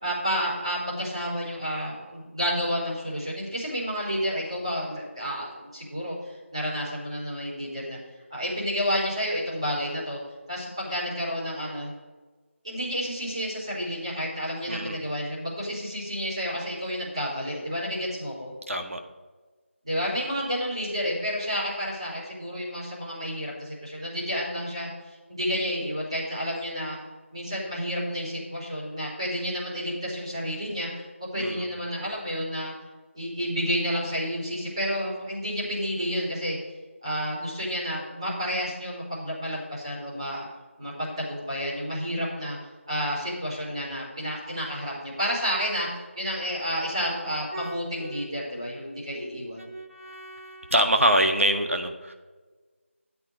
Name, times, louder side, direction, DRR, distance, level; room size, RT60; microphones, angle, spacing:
voice 1, 0.0-8.0 8.3-10.2 10.5-11.9 12.6-18.5 19.8-24.9 25.3-27.0 27.3-32.7 33.1-36.6 37.0-40.4 40.8-42.6 42.9-49.7, equal, 25° right, -7 dB, 4.2 m, -30 dB
voice 2, 14.7-15.0 18.7-19.0 31.4-31.7 47.5-48.3 49.6-52.1, right 1 dB, 75° right, 4 dB, 1.8 m, -26 dB
13.0 x 8.3 x 4.8 m, 1.3 s
figure-of-eight pair, 180°, 7 cm